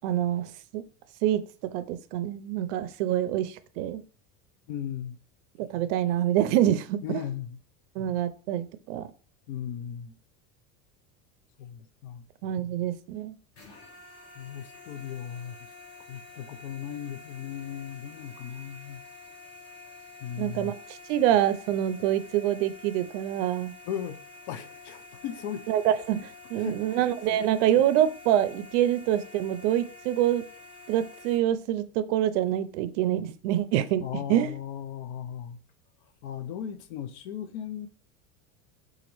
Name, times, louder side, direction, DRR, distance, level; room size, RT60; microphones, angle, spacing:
voice 1, 0.0-0.8 1.2-1.4 1.7-4.0 5.7-7.2 8.0-9.1 12.4-13.3 20.4-23.7 25.7-30.4 30.9-34.5, right 11 dB, 70° right, 0.5 m, -26 dB
voice 2, 4.7-5.2 7.0-7.6 9.5-10.1 11.6-12.2 14.4-15.6 16.1-19.0 20.2-20.7 23.9-25.6 26.6-27.4 34.0-35.6 36.2-37.9, left 9 dB, 65° left, 0.6 m, -37 dB
sound 1, 13.5-31.4, left 3 dB, 35° left, 1.2 m, -48 dB
4.0 x 2.5 x 3.0 m
cardioid pair, 160°, 38 cm